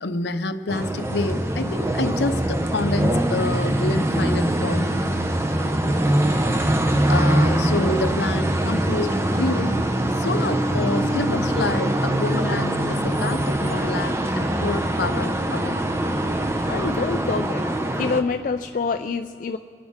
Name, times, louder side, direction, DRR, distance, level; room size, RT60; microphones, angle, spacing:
voice 1, 0.0-5.0 7.1-15.8, left 2 dB, 70° left, 10 dB, 0.7 m, -28 dB
sound 1, 0.7-18.2, right 1 dB, 15° right, 0.7 m, -23 dB
voice 2, 16.7-17.6 18.0-19.6, left 4 dB, 45° left, 7 dB, 0.3 m, -26 dB
26.0 x 10.5 x 3.6 m, 2.4 s
head